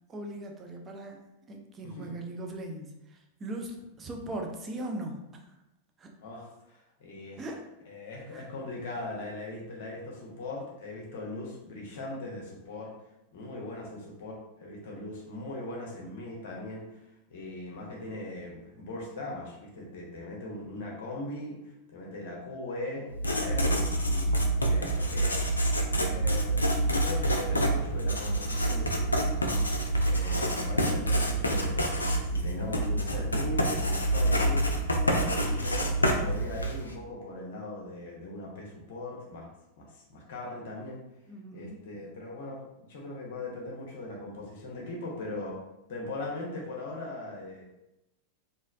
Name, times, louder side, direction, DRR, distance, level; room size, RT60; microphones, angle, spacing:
voice 1, 0.1-1.2 1.5-5.2 6.0-6.1 7.4-7.6 8.3-8.4 41.3-41.8, right 1 dB, 20° right, 2 dB, 0.5 m, -39 dB
voice 2, 1.8-2.1 6.2-7.5 7.8-12.9 13.3-17.0 17.3-24.4 24.7-25.3 25.8-29.6 30.0-34.9 35.2-41.0 41.5-42.6 42.9-45.6 45.9-47.6, left 2 dB, 55° left, -2 dB, 0.7 m, -40 dB
Writing, 23.1-36.9, right 1 dB, 80° left, 0.4 m, -27 dB
3.1 x 2.5 x 2.4 m, 0.90 s
figure-of-eight pair, 90°, 0 cm